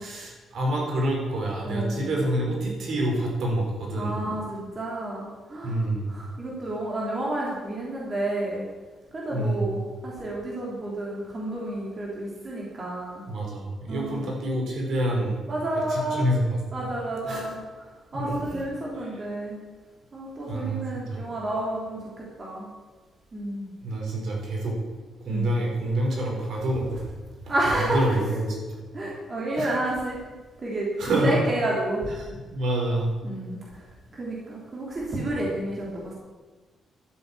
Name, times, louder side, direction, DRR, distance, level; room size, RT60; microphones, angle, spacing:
voice 1, 0.0-4.1 5.6-6.1 9.3-9.7 13.3-15.4 15.9-16.6 17.2-17.4 18.1-18.6 20.5-21.2 23.8-24.8 25.2-27.1 27.4-28.6 29.6-29.7 31.0-31.4 32.3-33.1, right 1 dB, 55° right, -1 dB, 5.1 m, -27 dB
voice 2, 1.6-2.1 4.0-5.8 6.1-8.6 9.1-13.2 13.9-14.3 15.5-16.3 16.7-19.6 20.1-22.7 23.3-23.7 25.3-25.5 27.5-28.1 28.9-30.2 30.6-32.1 33.2-33.6 34.1-36.1, right 1 dB, 25° right, -4 dB, 3.3 m, -30 dB
12.5 x 10.0 x 8.6 m, 1.3 s
cardioid pair, 170°, 0 cm